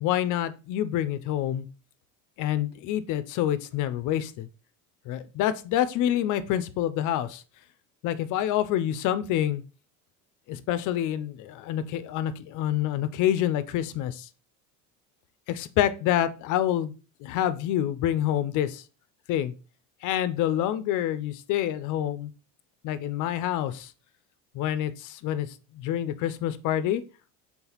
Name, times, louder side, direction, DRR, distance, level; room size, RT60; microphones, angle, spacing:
voice 1, 0.0-1.7 2.4-4.5 5.1-7.4 8.0-9.6 10.5-14.3 15.5-16.9 17.2-18.8 19.3-19.5 20.0-22.3 22.8-23.9 24.5-25.5 25.7-27.0, left 11 dB, 50° left, 14 dB, 0.4 m, -27 dB
3.9 x 3.8 x 2.9 m, 0.34 s
supercardioid pair, 100°, 40 cm